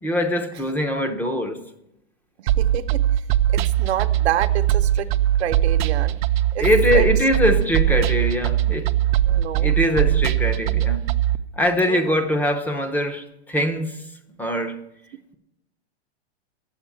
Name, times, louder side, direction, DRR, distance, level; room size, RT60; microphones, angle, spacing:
voice 1, 0.0-1.6 6.6-8.9 9.5-11.1 11.6-14.0 14.4-14.8, left 1 dB, 5° left, 0.5 m, -22 dB
voice 2, 2.4-3.0 3.5-5.1 5.4-6.2 6.5-6.7 6.9-7.1 9.2-9.7 11.8-12.2, right 11 dB, 75° right, 0.9 m, -28 dB
sound 1, 2.5-11.4, right 12 dB, 50° right, 0.5 m, -20 dB
9.0 x 7.2 x 8.7 m
supercardioid pair, 155°, 32 cm